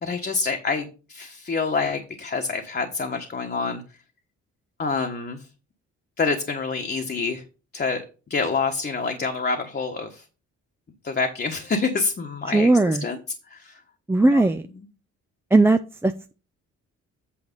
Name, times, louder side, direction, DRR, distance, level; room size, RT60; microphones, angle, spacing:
voice 1, 0.0-3.8 4.8-5.5 6.2-7.4 7.7-8.0 8.3-10.2 11.0-13.2 13.5-13.8 14.3-14.4, left 4 dB, 35° left, 1.3 m, -27 dB
voice 2, 12.5-13.1 14.1-14.7 15.5-16.3, right 2 dB, 10° right, 0.5 m, -18 dB
8.7 x 4.6 x 5.3 m
cardioid pair, 90°, 30 cm